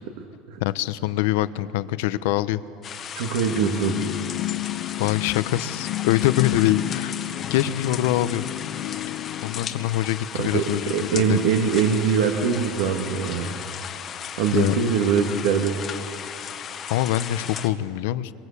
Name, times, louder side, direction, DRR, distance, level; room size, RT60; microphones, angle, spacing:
voice 1, 0.6-2.6 5.0-7.1 7.5-8.4 9.4-11.4 14.5-14.7 16.9-18.4, left 14 dB, 70° left, 14 dB, 0.9 m, -24 dB
sound 1, 2.8-17.7, left 8 dB, 25° left, 1.2 m, -36 dB
voice 2, 3.1-4.1 10.4-13.6 14.4-15.8, right 6 dB, 75° right, 4 dB, 2.0 m, -23 dB
sound 2, 3.5-9.9, left 17 dB, 40° left, 0.5 m, -31 dB
24.5 x 23.0 x 8.4 m, 2.5 s
cardioid pair, 170°, 0 cm